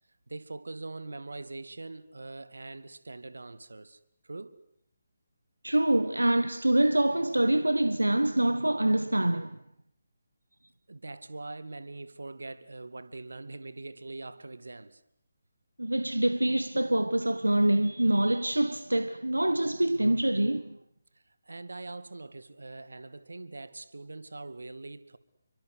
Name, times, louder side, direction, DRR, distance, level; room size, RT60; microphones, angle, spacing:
voice 1, 0.3-4.6 10.9-15.0 21.1-25.2, right 2 dB, 75° right, 2.2 m, -43 dB
voice 2, 5.6-9.6 15.8-20.8, right 1 dB, 90° right, 1.3 m, -25 dB
29.5 x 23.5 x 8.3 m
figure-of-eight pair, 150°, 0 cm